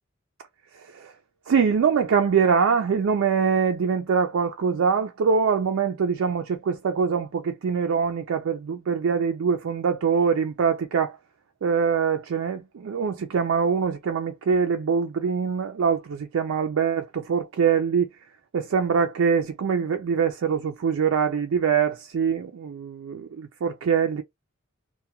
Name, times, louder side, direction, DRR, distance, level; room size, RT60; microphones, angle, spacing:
voice 1, 1.5-11.2 11.6-18.1 18.5-24.2, right 6 dB, 70° right, 0.4 m, -23 dB
2.2 x 2.1 x 2.8 m
head